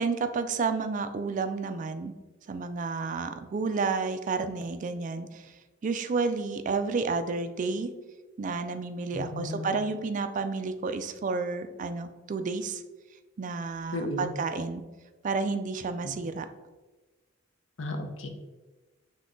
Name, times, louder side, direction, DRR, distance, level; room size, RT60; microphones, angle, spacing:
voice 1, 0.0-2.1 2.5-5.5 5.8-7.9 8.4-12.8 13.4-14.8 15.2-16.5, right 4 dB, 40° right, 9 dB, 0.3 m, -31 dB
voice 2, 9.1-9.8 13.9-14.3 17.8-18.3, left 1 dB, 70° left, 4 dB, 0.6 m, -34 dB
6.0 x 2.2 x 3.7 m, 1.2 s
head